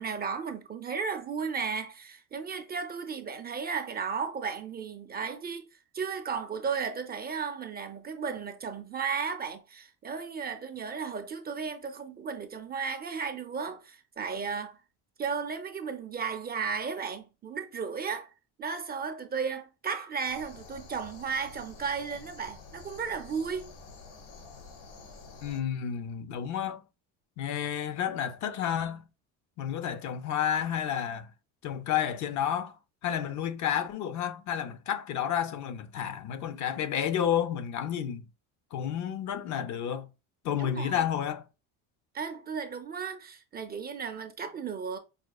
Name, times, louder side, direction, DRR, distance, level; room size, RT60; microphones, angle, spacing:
voice 1, 0.0-5.7 5.9-14.8 15.2-18.3 18.6-23.7 40.6-41.0 42.1-45.0, right 6 dB, 25° right, 0.4 m, -34 dB
sound 1, 20.3-25.6, left 4 dB, 80° left, 1.4 m, -49 dB
voice 2, 25.4-26.8 27.4-29.0 29.6-31.3 31.6-32.8 33.0-38.2 38.7-40.1 40.4-41.5, left 9 dB, 50° left, 0.5 m, -31 dB
5.0 x 2.3 x 2.2 m
cardioid pair, 110°, 37 cm